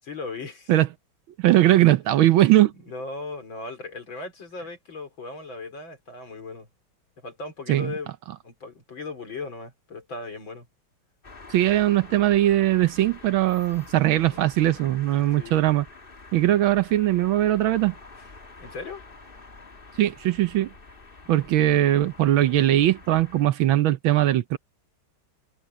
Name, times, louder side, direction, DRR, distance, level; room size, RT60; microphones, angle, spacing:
voice 1, 0.0-0.7 1.8-1.9 2.7-6.7 7.2-8.1 8.4-10.7 14.3-14.4 15.1-15.6 18.6-19.0, left 3 dB, 65° left, 5.0 m, -37 dB
voice 2, 1.4-2.7 7.7-7.9 11.5-15.8 16.3-17.9 20.0-20.7 21.3-24.6, right 14 dB, 75° right, 1.5 m, -20 dB
sound 1, 11.2-23.5, left 3 dB, 25° left, 1.9 m, -47 dB
omnidirectional pair, 2.4 m